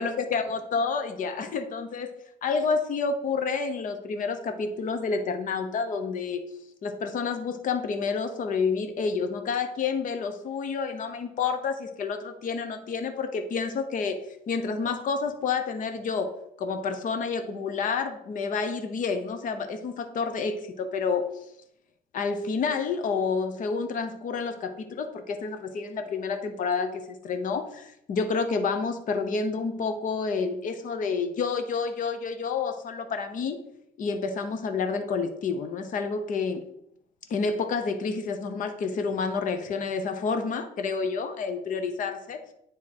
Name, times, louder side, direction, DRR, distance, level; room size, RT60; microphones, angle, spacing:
voice 1, 0.0-2.1 2.4-6.4 6.8-14.2 14.5-16.3 16.6-21.2 22.1-33.6 34.0-36.6 37.3-42.4, left 5 dB, 50° left, 7 dB, 0.9 m, -29 dB
9.5 x 3.7 x 4.4 m, 0.74 s
cardioid pair, 110°, 17 cm